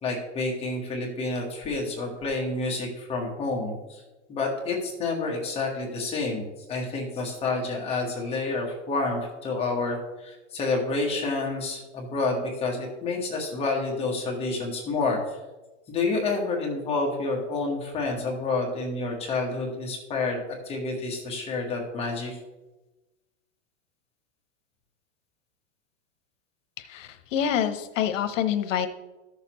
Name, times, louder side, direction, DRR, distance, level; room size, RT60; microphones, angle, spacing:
voice 1, 0.0-3.7 4.3-10.0 10.2-15.2 15.9-20.4 20.7-22.3, left 3 dB, 15° left, -1 dB, 1.3 m, -29 dB
voice 2, 26.8-28.9, left 9 dB, 85° left, 8 dB, 0.9 m, -27 dB
14.0 x 6.6 x 3.0 m, 1.1 s
supercardioid pair, 165°, 37 cm